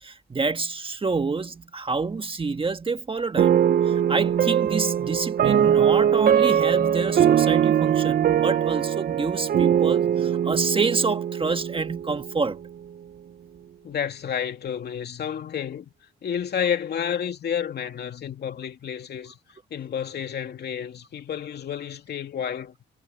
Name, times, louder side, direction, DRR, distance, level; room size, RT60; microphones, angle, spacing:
voice 1, 0.0-3.6 3.8-12.6, right 4 dB, 25° right, 1.6 m, -28 dB
sound 1, 3.4-12.5, right 9 dB, 50° right, 0.6 m, -21 dB
voice 2, 13.8-15.8 16.2-19.4 19.7-22.8, left 8 dB, 55° left, 2.6 m, -30 dB
cardioid pair, 90°, 20 cm